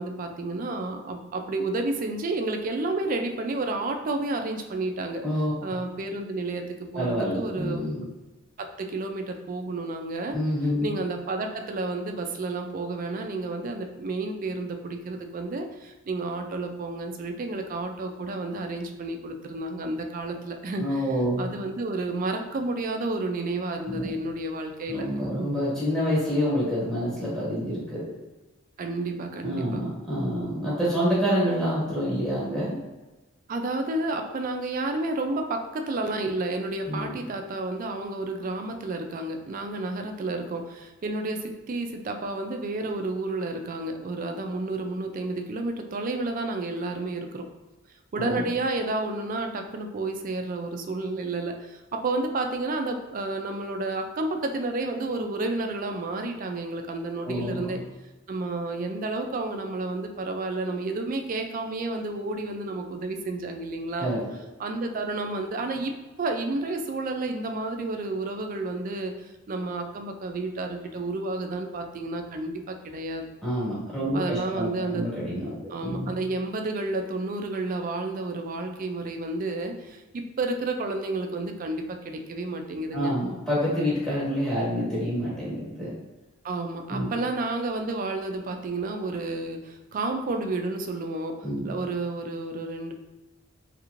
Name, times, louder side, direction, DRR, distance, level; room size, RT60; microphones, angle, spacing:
voice 1, 0.0-5.2 5.6-8.1 8.6-10.4 10.8-21.1 21.4-25.1 25.4-25.5 28.8-29.8 33.5-47.5 48.1-57.8 58.3-64.1 64.6-73.3 74.1-75.0 75.7-83.1 86.4-92.9, right 2 dB, 40° right, 5 dB, 0.3 m, -31 dB
voice 2, 5.2-5.8 6.9-8.0 10.3-10.9 20.8-21.5 23.9-24.1 24.9-28.1 29.4-32.8 36.9-37.2 48.2-48.4 57.2-57.7 64.0-64.2 73.4-76.1 82.9-85.9 86.9-87.1 91.4-91.7, equal, 5° left, -8 dB, 1.3 m, -27 dB
3.2 x 3.0 x 2.5 m, 1.1 s
head